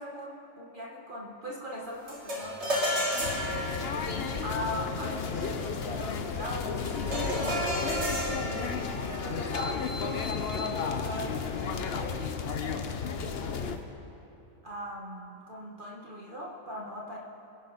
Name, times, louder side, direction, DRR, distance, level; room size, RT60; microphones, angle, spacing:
voice 1, 0.0-3.3 4.4-7.8 8.0-13.7 14.6-17.2, equal, 40° right, -4 dB, 1.7 m, -40 dB
sound 1, 2.1-11.6, equal, 55° right, 3.1 m, -35 dB
sound 2, 2.4-11.1, left 1 dB, 10° right, 0.6 m, -49 dB
sound 3, 3.2-13.8, left 5 dB, 50° left, 1.0 m, -33 dB
24.5 x 11.5 x 4.2 m, 2.9 s
omnidirectional pair, 1.4 m